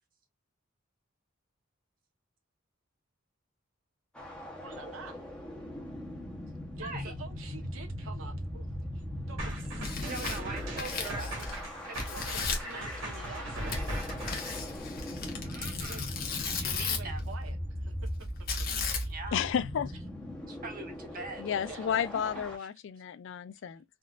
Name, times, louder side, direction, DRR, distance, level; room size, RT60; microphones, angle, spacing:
sound 1, 4.1-22.6, equal, 5° left, 0.8 m, -40 dB
voice 1, 4.6-5.2 6.8-8.7 8.9-10.0 11.0-11.6 12.1-13.9 15.6-16.1 16.7-17.9 18.2-18.3 19.0-19.2 21.7-21.9, right 3 dB, 90° right, 0.9 m, -48 dB
voice 2, 6.8-7.1 10.0-11.3 11.9-12.4 15.4-16.1 16.4-17.2 19.1-19.3 20.5-21.6 22.1-22.2 22.6-22.7, right 3 dB, 45° right, 1.1 m, -42 dB
sound 2, 9.4-14.6, right 1 dB, 75° right, 1.5 m, -38 dB
Tearing, 9.6-11.7 11.9-12.7 13.7-17.2 18.5-19.3, left 5 dB, 50° left, 0.8 m, -36 dB
voice 3, 19.3-19.9 21.4-23.8, left 8 dB, 65° left, 0.3 m, -32 dB
3.6 x 2.4 x 2.3 m
head